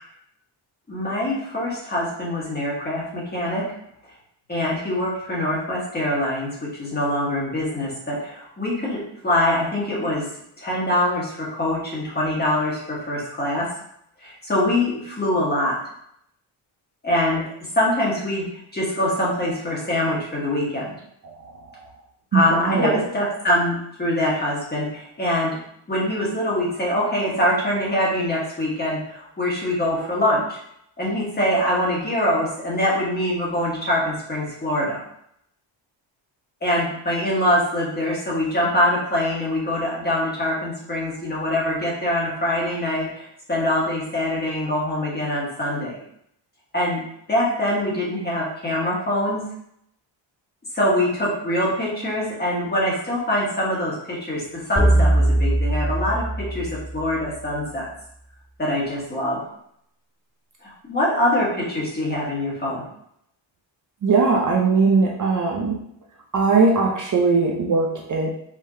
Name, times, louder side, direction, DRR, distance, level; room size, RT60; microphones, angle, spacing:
voice 1, 0.9-3.6 4.5-10.2 10.6-13.7 14.2-15.8 17.0-17.4 17.7-18.5 18.7-20.9 22.3-25.6 25.9-30.6 31.0-35.0 36.6-46.0 46.7-47.0 47.3-49.4 50.7-57.9 58.6-59.4 60.6-62.8, left 1 dB, 20° left, -5 dB, 1.4 m, -24 dB
voice 2, 21.2-21.9 22.3-23.0 64.0-65.8 66.3-68.3, right 4 dB, 40° right, -1 dB, 0.6 m, -20 dB
sound 1, 54.8-57.2, right 1 dB, 10° right, 1.6 m, -20 dB
4.8 x 3.7 x 2.7 m, 0.73 s
wide cardioid pair, 160°, 46 cm